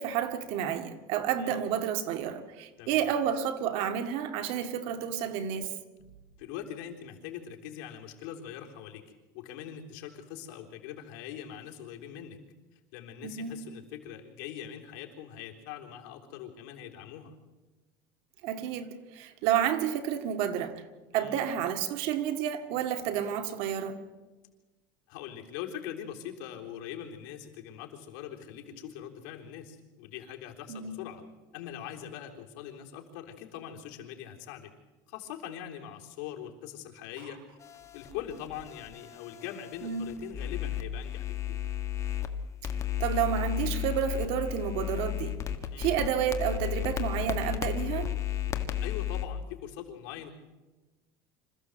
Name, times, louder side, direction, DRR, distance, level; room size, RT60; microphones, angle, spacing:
voice 1, 0.0-5.7 13.2-13.5 18.4-20.8 21.1-24.0 30.7-31.0 39.8-40.1 43.0-45.4 45.8-48.2, right 9 dB, 65° right, 2.1 m, -30 dB
voice 2, 6.4-9.0 9.3-12.4 12.7-17.4 21.1-21.4 25.1-31.2 31.5-34.7 35.1-37.6 37.9-41.6 45.7-45.9 48.8-50.3, left 10 dB, 80° left, 3.7 m, -42 dB
sound 1, 37.6-42.3 42.6-49.2, left 11 dB, 30° left, 1.6 m, -34 dB
26.5 x 15.0 x 8.0 m
cardioid pair, 155°, 11 cm